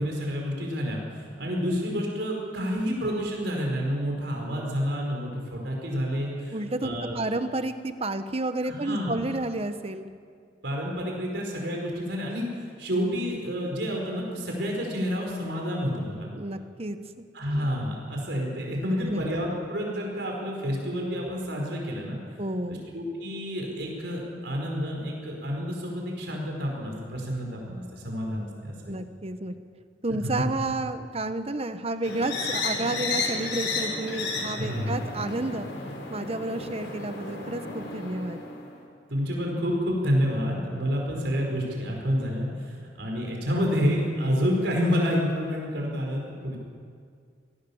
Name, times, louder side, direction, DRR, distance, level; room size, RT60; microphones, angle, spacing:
voice 1, 0.0-7.2 8.8-9.2 10.6-16.3 17.3-22.2 22.7-29.0 30.2-30.4 34.6-35.0 39.1-46.6, equal, 70° right, 0 dB, 5.0 m, -29 dB
voice 2, 6.5-10.1 16.3-17.2 19.0-19.2 22.4-22.8 28.9-29.5 30.0-35.7 36.1-38.4, right 2 dB, 35° right, 10 dB, 1.1 m, -31 dB
sound 1, 32.0-38.8, left 3 dB, 80° left, 5.7 m, -33 dB
26.5 x 18.0 x 7.2 m, 2.1 s
head